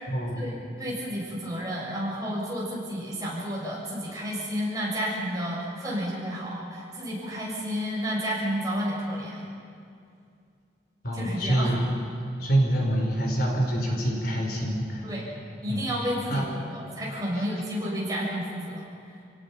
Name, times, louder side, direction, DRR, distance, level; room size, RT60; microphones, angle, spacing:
voice 1, 0.1-0.5 11.0-11.8 12.4-15.0 15.7-15.9 16.3-16.5, right 1 dB, 60° left, 0 dB, 4.0 m, -26 dB
voice 2, 0.8-9.5 11.1-11.8 15.0-15.2 15.6-18.8, equal, 20° right, -5 dB, 6.8 m, -31 dB
29.5 x 18.0 x 5.8 m, 2.4 s
head